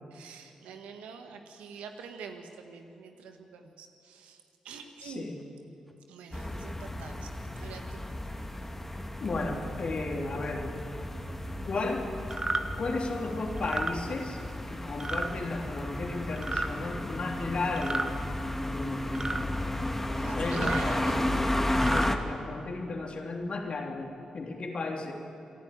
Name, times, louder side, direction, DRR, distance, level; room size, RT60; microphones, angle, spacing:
voice 1, 0.1-5.3 6.1-7.3 7.6-8.1 20.2-21.2, right 5 dB, 85° right, 5 dB, 1.6 m, -44 dB
sound 1, 4.8-4.9 5.4-5.5 5.9-6.0 6.3-6.4 6.8-6.9 7.3-7.5 7.8-7.9 8.3-8.4 8.8-9.0 9.3-9.7 10.2-10.4 10.8-10.9 11.3-11.4 11.7-11.8 12.2-12.3 12.7-12.8 13.2-13.3 13.6-13.7 14.1-14.2 14.5-14.7 15.0-15.2, equal, 5° right, 3.1 m, -52 dB
voice 2, 5.0-5.4 9.2-10.7 11.6-12.1 12.8-14.4 14.7-18.1 18.7-19.1 20.3-21.0 21.8-25.1, left 3 dB, 55° left, 1 dB, 3.3 m, -34 dB
sound 2, 6.3-22.2, left 1 dB, 15° left, 2.1 m, -33 dB
sound 3, 12.3-12.6 13.6-13.9 15.0-15.3 16.4-16.7 17.8-18.1 19.1-19.4 20.5-20.8 21.7-22.1, right 3 dB, 35° right, 1.4 m, -32 dB
26.0 x 11.5 x 9.0 m, 2.7 s
supercardioid pair, 40°, 2 cm